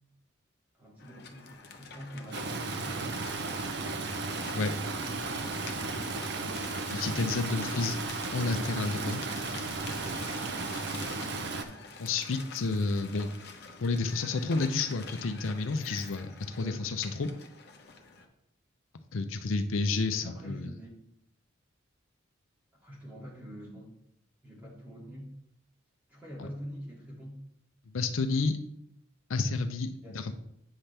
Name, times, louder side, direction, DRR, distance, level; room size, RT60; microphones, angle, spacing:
voice 1, 0.7-4.0 16.6-16.8 20.2-20.9 22.8-23.9 24.4-25.3 26.1-27.4 30.0-30.3, equal, 10° right, -6 dB, 2.5 m, -45 dB
sound 1, 1.0-18.3, left 4 dB, 55° left, 0.9 m, -47 dB
Stream, 2.3-11.6, right 3 dB, 55° right, 0.7 m, -34 dB
voice 2, 6.9-8.0 8.3-9.2 12.0-13.3 13.8-16.3 16.6-17.3 19.1-20.7 26.4-26.5 27.9-28.6 29.3-30.3, left 3 dB, 80° left, 8 dB, 0.6 m, -30 dB
8.8 x 5.8 x 3.4 m, 0.75 s
head